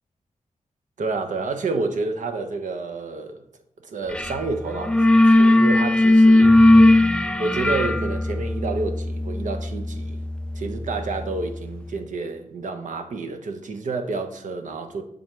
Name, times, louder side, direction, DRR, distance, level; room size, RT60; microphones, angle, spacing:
voice 1, 1.0-3.4 3.8-6.6 7.4-10.2 10.5-15.0, right 3 dB, 75° right, 0.9 m, -29 dB
sound 1, 4.1-4.4 4.7-11.3, left 1 dB, 10° left, 0.3 m, -18 dB
7.2 x 3.9 x 4.5 m
cardioid pair, 75°, 13 cm